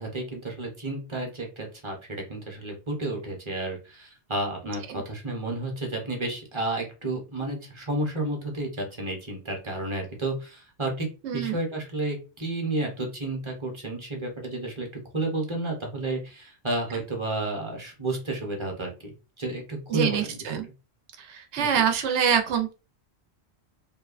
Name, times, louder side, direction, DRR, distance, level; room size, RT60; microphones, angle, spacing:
voice 1, 0.0-11.1 11.3-14.9 15.1-18.9 19.4-20.4 21.6-21.7, right 2 dB, 30° right, 0 dB, 0.7 m, -31 dB
voice 2, 11.2-11.6 19.9-20.7 21.2-22.7, right 8 dB, 85° right, 6 dB, 0.9 m, -25 dB
2.8 x 2.2 x 2.4 m, 0.31 s
omnidirectional pair, 1.1 m